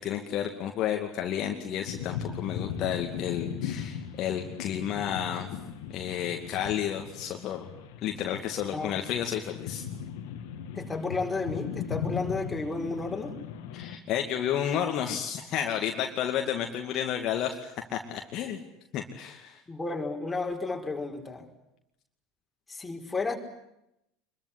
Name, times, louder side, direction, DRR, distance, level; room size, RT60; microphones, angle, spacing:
voice 1, 0.0-5.5 5.9-7.7 8.0-9.8 13.7-18.6 18.9-19.6, left 9 dB, 45° left, 3 dB, 2.4 m, -31 dB
sound 1, 1.8-14.0, left 8 dB, 65° left, 2.5 m, -38 dB
voice 2, 10.7-13.4 19.7-21.4 22.7-23.4, left 3 dB, 15° left, 2 dB, 5.0 m, -32 dB
25.5 x 22.5 x 9.9 m, 0.85 s
figure-of-eight pair, 75°, 0 cm